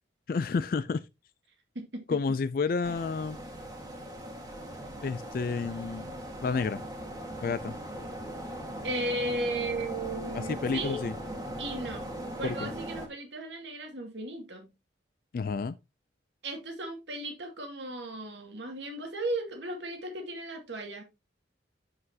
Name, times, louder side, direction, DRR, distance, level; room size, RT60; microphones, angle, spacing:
voice 1, 0.3-1.0 2.1-3.4 5.0-6.1 6.4-6.8 7.4-7.7 10.3-11.1 12.4-12.7 15.3-15.8, left 4 dB, 50° left, 0.3 m, -30 dB
sound 1, 2.8-13.1, equal, 20° right, 1.6 m, -39 dB
voice 2, 8.8-11.0 11.6-12.1 12.4-14.7 16.4-21.0, right 1 dB, 75° right, 2.1 m, -35 dB
7.8 x 7.6 x 2.8 m
head